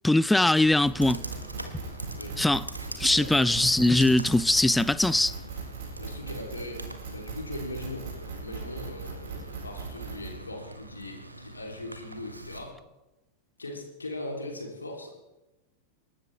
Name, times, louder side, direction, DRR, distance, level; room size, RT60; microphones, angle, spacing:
voice 1, 0.0-1.2 1.7-1.8 2.4-2.7 3.0-5.4, left 2 dB, 5° left, 0.4 m, -22 dB
Computer keyboard, 0.6-12.6, right 1 dB, 85° right, 1.5 m, -43 dB
sound 1, 0.8-10.3, right 5 dB, 50° right, 4.8 m, -39 dB
voice 2, 3.1-3.5 6.0-8.1 8.4-12.8 13.6-15.1, left 2 dB, 80° left, 3.3 m, -39 dB
27.5 x 12.5 x 3.4 m
figure-of-eight pair, 90°, 0 cm